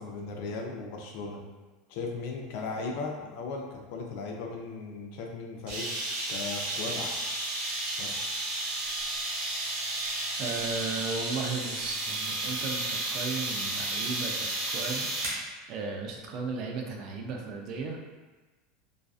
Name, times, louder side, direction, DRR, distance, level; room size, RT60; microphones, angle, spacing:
voice 1, 0.0-1.4 1.9-5.9 6.3-7.2 8.0-8.2, left 4 dB, 65° left, 1 dB, 0.4 m, -37 dB
sound 1, 5.7-15.4, right 2 dB, 75° right, 1.0 m, -32 dB
voice 2, 10.4-15.1 15.7-18.0, right 4 dB, 45° right, 2 dB, 0.4 m, -35 dB
2.5 x 2.3 x 2.3 m, 1.2 s
supercardioid pair, 140°, 0 cm